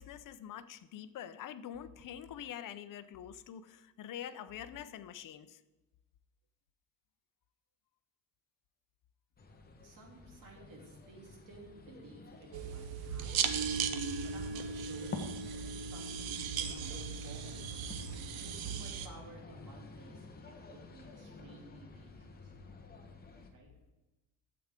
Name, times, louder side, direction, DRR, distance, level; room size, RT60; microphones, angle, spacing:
voice 1, 0.0-5.6, left 10 dB, 60° left, 13 dB, 0.6 m, -45 dB
sound 1, 9.4-23.5, left 3 dB, 25° left, 1.1 m, -51 dB
voice 2, 9.8-15.1 15.5-17.8 18.4-22.5 23.5-23.7, right 2 dB, 60° right, -1 dB, 3.0 m, -54 dB
sound 2, 12.5-19.1, right 6 dB, 80° right, 0.8 m, -37 dB
12.5 x 7.8 x 3.7 m, 1.1 s
cardioid pair, 145°, 37 cm